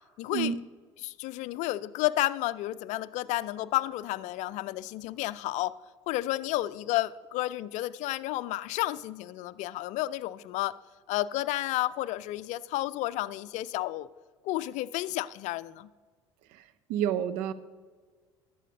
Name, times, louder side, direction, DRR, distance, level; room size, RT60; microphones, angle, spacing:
voice 1, 0.2-0.5 1.0-5.8 6.1-10.7 11.1-14.1 14.4-15.9, left 16 dB, 50° left, 0.4 m, -31 dB
voice 2, 16.9-17.5, right 9 dB, 60° right, 0.6 m, -29 dB
20.0 x 7.9 x 2.6 m
figure-of-eight pair, 60°, 15 cm